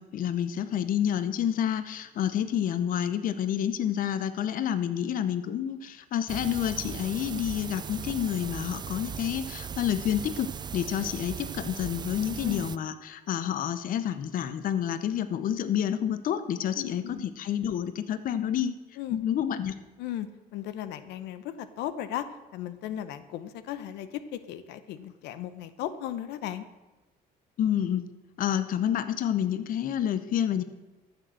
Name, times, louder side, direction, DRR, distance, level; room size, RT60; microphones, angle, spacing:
voice 1, 0.0-18.8 19.1-19.7 27.6-28.1 28.4-30.6, left 9 dB, 55° left, 12 dB, 0.8 m, -29 dB
sound 1, 6.3-12.8, right 7 dB, 25° right, 0.3 m, -38 dB
voice 2, 16.8-17.2 19.0-19.2 20.0-26.6, left 11 dB, 85° left, 13 dB, 0.9 m, -36 dB
13.5 x 6.8 x 7.6 m, 1.1 s
cardioid pair, 110°, 17 cm